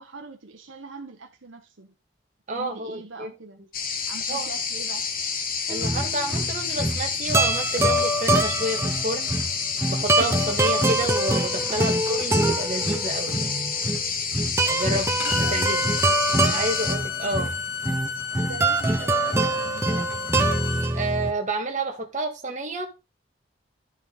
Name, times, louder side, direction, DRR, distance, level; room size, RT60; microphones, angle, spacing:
voice 1, 0.0-1.9 2.5-3.6 4.1-5.1 11.7-12.1 14.8-15.8 17.2-17.5 18.4-20.2, right 3 dB, 75° right, 1.1 m, -41 dB
voice 2, 2.5-3.3 4.3-4.5 5.7-9.3 9.9-13.8 14.7-15.8 16.5-17.5 20.9-22.9, right 1 dB, 35° right, 1.7 m, -30 dB
sound 1, 3.7-16.9, left 5 dB, 45° left, 1.3 m, -29 dB
sound 2, 5.7-21.3, right 2 dB, 15° right, 0.7 m, -25 dB
Bowed string instrument, 15.2-20.9, left 5 dB, 75° left, 2.4 m, -32 dB
12.5 x 4.5 x 3.9 m
head